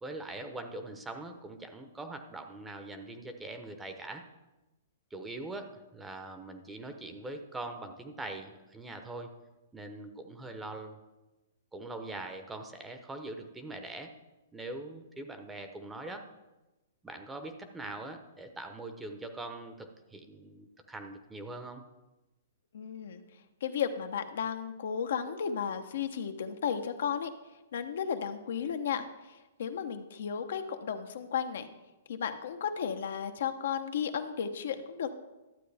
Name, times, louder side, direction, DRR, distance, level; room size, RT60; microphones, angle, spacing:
voice 1, 0.0-4.3 5.1-9.3 9.7-11.0 11.7-14.1 14.5-16.3 17.0-21.8, right 2 dB, 10° right, 6 dB, 0.8 m, -42 dB
voice 2, 22.7-23.2 23.6-27.3 27.7-31.7 32.1-35.1, left 7 dB, 70° left, 7 dB, 0.8 m, -34 dB
12.0 x 7.7 x 3.4 m, 1.0 s
hypercardioid pair, 145°, 0 cm